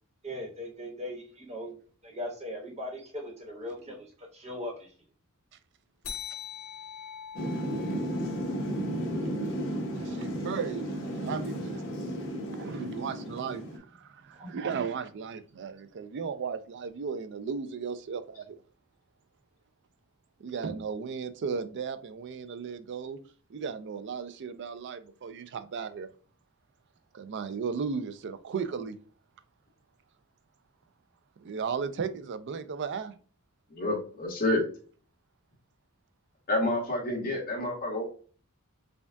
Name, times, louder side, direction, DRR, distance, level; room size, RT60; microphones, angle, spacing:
voice 1, 0.2-1.7 2.0-4.9 14.3-14.6, left 1 dB, 30° right, 1.2 m, -39 dB
sound 1, 6.0-11.0, left 8 dB, 75° left, 0.7 m, -45 dB
Thunder / Rain, 7.3-13.8, equal, 55° left, 1.1 m, -33 dB
voice 2, 9.9-11.9 12.5-18.6 20.4-23.2 23.5-26.1 27.1-29.0 31.4-33.1, right 6 dB, 50° right, 0.4 m, -35 dB
voice 3, 33.7-34.6 36.5-38.0, left 1 dB, 40° left, 1.5 m, -28 dB
5.1 x 2.4 x 2.2 m
head